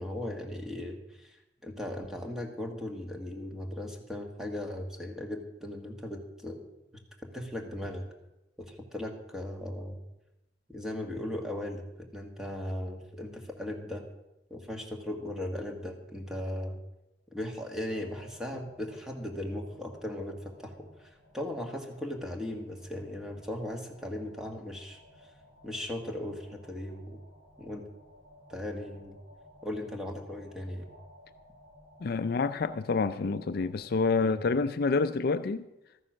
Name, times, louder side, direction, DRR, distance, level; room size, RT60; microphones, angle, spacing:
voice 1, 0.0-1.4 1.6-6.6 6.9-8.1 8.6-10.0 10.7-14.0 14.5-16.8 17.3-25.0 25.6-27.2 27.6-27.8 28.5-29.2 29.6-30.9 34.2-34.4, left 1 dB, 5° right, 1.8 m, -38 dB
sound 1, 17.9-34.0, left 1 dB, 85° right, 4.5 m, -57 dB
voice 2, 32.0-35.6, left 4 dB, 60° left, 0.4 m, -28 dB
13.5 x 9.7 x 6.3 m
head